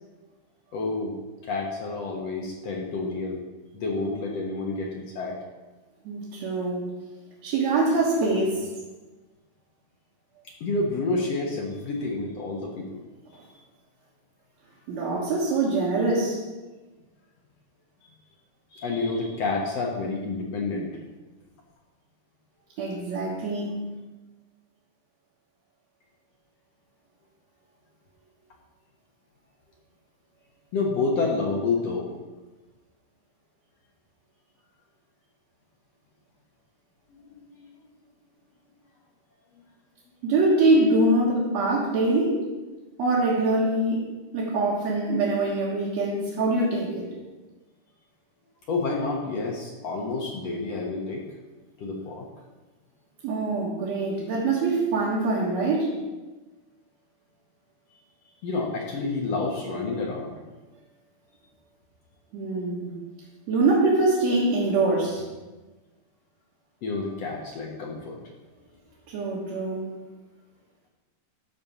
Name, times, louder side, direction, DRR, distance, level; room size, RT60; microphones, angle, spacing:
voice 1, 0.7-1.1 1.4-3.4 3.7-5.4 10.4-13.0 18.0-18.1 18.7-21.0 30.7-32.2 37.3-37.7 48.7-51.2 51.8-52.3 58.4-60.4 66.8-68.2, left 3 dB, 60° left, -1 dB, 1.9 m, -29 dB
voice 2, 6.0-6.9 7.4-8.7 14.9-16.4 22.8-23.8 40.2-42.4 43.0-44.0 44.3-47.1 53.2-55.9 62.3-62.9 63.5-65.3 69.1-69.9, right 2 dB, 60° right, -6 dB, 2.6 m, -24 dB
12.5 x 4.3 x 6.7 m, 1.2 s
omnidirectional pair, 3.9 m